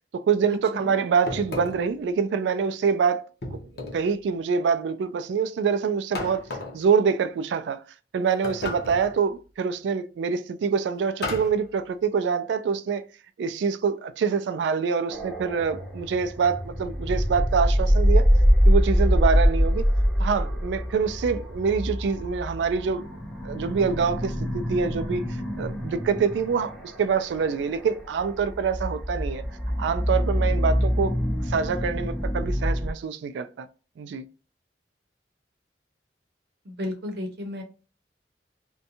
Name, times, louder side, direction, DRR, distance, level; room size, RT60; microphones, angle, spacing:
voice 1, 0.1-3.6 3.9-6.5 6.7-7.8 8.1-13.0 13.4-18.3 18.7-19.8 20.2-23.1 23.4-29.4 29.8-31.1 31.4-33.7 34.0-34.2, right 6 dB, 85° right, 0.3 m, -25 dB
sound 1, 1.3-2.0 3.4-4.1 6.1-6.8 8.4-9.2 11.2-11.6, left 2 dB, 60° left, 0.7 m, -34 dB
sound 2, 15.1-32.9, equal, ahead, 0.5 m, -24 dB
voice 2, 36.6-37.6, left 1 dB, 60° right, 0.8 m, -33 dB
2.6 x 2.2 x 2.7 m
head